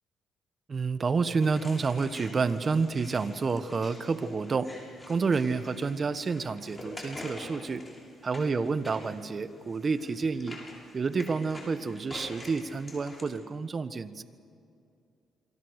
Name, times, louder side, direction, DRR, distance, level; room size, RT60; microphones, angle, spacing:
voice 1, 0.7-4.7 5.1-7.8 8.2-10.6 10.9-14.2, right 4 dB, 40° right, 12 dB, 1.4 m, -29 dB
sound 1, 1.4-13.2, left 1 dB, 20° left, 7.5 m, -46 dB
28.5 x 24.0 x 6.6 m, 2.5 s
cardioid pair, 90°, 0 cm